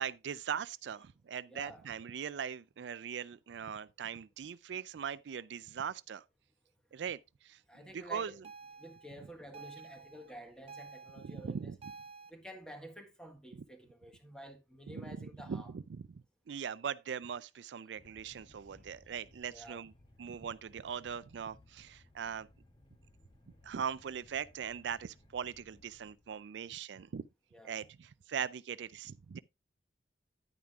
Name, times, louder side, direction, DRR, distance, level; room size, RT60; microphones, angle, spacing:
voice 1, 0.0-6.2 6.9-7.6 7.9-8.3 11.2-11.8 14.9-15.8 16.5-19.9 20.2-22.5 23.6-27.3 27.6-29.4, right 7 dB, 75° right, 0.4 m, -40 dB
voice 2, 1.5-1.9 7.7-8.4 8.8-11.8 12.3-15.7 19.5-19.8 27.5-27.9, equal, 5° left, 1.5 m, -51 dB
sound 1, 8.4-12.3, right 4 dB, 35° right, 0.9 m, -51 dB
sound 2, 17.9-26.5, left 1 dB, 25° left, 2.3 m, -63 dB
10.5 x 9.4 x 2.4 m
head